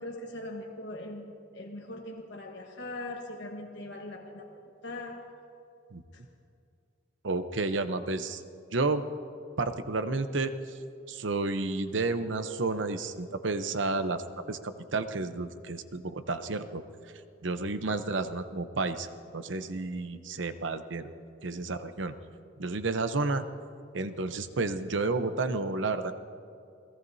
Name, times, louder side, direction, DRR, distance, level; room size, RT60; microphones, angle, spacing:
voice 1, 0.0-4.5 4.8-5.3 6.1-6.2, left 1 dB, 65° left, 1 dB, 1.3 m, -40 dB
voice 2, 7.2-8.4 8.7-9.0 9.6-10.8 11.1-16.8 17.4-19.1 19.3-21.1 21.4-22.1 22.6-23.4 23.9-26.1, right 3 dB, 70° right, 10 dB, 0.8 m, -31 dB
28.5 x 17.5 x 2.7 m, 2.5 s
head